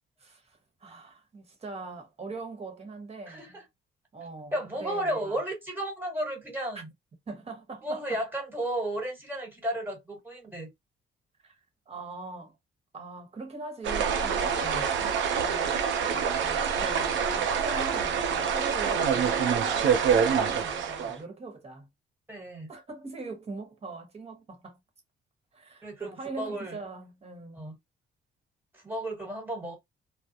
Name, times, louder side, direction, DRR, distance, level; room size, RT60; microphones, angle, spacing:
voice 1, 0.2-3.6 4.1-5.4 7.3-8.2 11.4-11.6 11.9-12.5 12.9-14.9 15.3-21.9 22.7-24.8 25.5-27.6, right 3 dB, 30° right, 1.1 m, -42 dB
voice 2, 3.3-3.6 4.5-6.9 7.8-10.7 14.6-14.8 22.3-22.7 25.8-26.8 27.5-27.7 28.7-29.8, right 1 dB, 10° right, 1.4 m, -33 dB
sound 1, 13.8-21.2, right 7 dB, 70° right, 0.6 m, -26 dB
2.3 x 2.1 x 2.8 m
cardioid pair, 90°, 20 cm